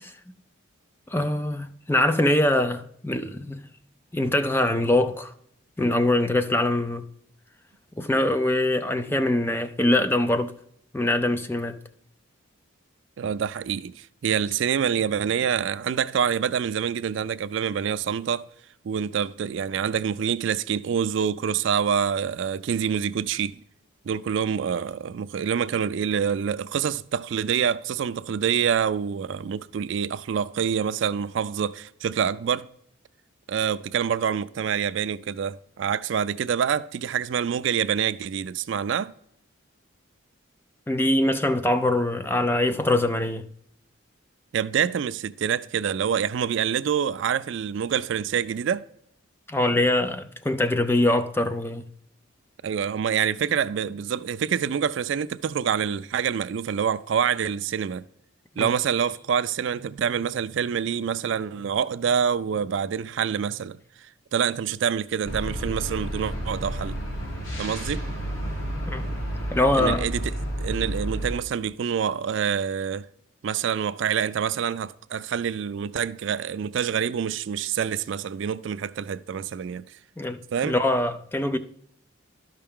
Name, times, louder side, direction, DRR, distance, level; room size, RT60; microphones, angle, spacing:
voice 1, 1.1-3.7 4.1-5.3 5.8-7.0 8.0-10.5 10.9-11.8 40.9-43.5 49.5-51.8 58.6-58.7 68.9-69.1 69.5-70.0 80.2-81.6, left 1 dB, 10° left, 0.4 m, -23 dB
voice 2, 13.2-18.5 18.8-23.6 24.1-32.7 33.5-39.1 44.5-48.8 52.6-58.0 58.6-63.8 64.3-67.0 67.6-68.0 69.8-73.1 73.4-79.8 80.5-80.7, right 7 dB, 65° right, 0.3 m, -26 dB
sound 1, 65.2-71.3, right 1 dB, 85° left, 3.2 m, -31 dB
12.0 x 5.6 x 3.6 m
head